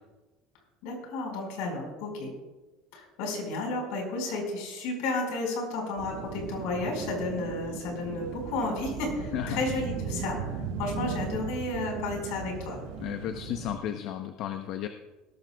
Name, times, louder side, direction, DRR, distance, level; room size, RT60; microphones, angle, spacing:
voice 1, 0.8-2.3 2.9-12.8, left 2 dB, 80° left, 1 dB, 4.9 m, -32 dB
sound 1, 6.0-13.8, right 6 dB, 85° right, 1.5 m, -37 dB
voice 2, 13.0-14.9, left 11 dB, 60° left, 6 dB, 0.8 m, -33 dB
17.0 x 13.5 x 2.3 m, 1.1 s
cardioid pair, 135°, 0 cm